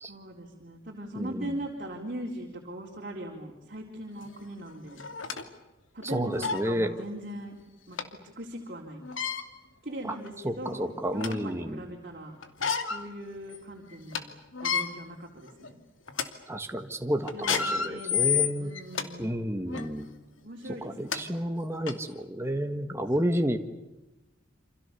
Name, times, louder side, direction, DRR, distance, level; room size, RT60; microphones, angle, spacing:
voice 1, 0.1-5.0 5.9-7.6 7.9-8.0 8.4-9.0 9.8-12.4 12.9-14.3 14.6-15.7 17.3-19.3 20.4-21.4, right 1 dB, 45° right, -1 dB, 4.2 m, -40 dB
voice 2, 1.1-1.5 6.0-6.9 10.0-10.2 10.4-11.8 16.5-18.7 19.2-20.1 20.8-23.6, equal, 15° right, 5 dB, 1.5 m, -31 dB
sound 1, 4.2-4.3 5.0-5.4 6.0-6.1 6.4-6.6 8.0-8.1 9.0-9.4 10.2-10.3 10.8-11.5 12.4-13.0 13.5-13.6 13.9-14.2 14.5-14.8 15.5-15.7 16.1-16.3 17.3-19.1 19.7-19.9 20.7-20.8 21.1-21.2 21.9-22.0, left 6 dB, 80° left, 2.6 m, -29 dB
29.0 x 27.0 x 7.0 m, 1.0 s
head